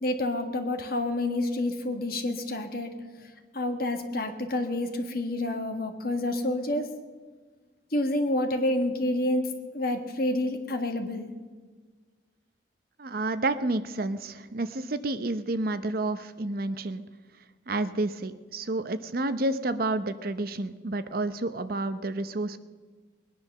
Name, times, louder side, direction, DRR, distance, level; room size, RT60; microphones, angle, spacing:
voice 1, 0.0-2.9 3.5-6.9 7.9-11.3, left 1 dB, 50° left, 5 dB, 1.6 m, -28 dB
voice 2, 13.0-17.0 17.7-22.6, right 2 dB, 50° right, 12 dB, 0.7 m, -30 dB
20.5 x 10.0 x 6.7 m, 1.4 s
head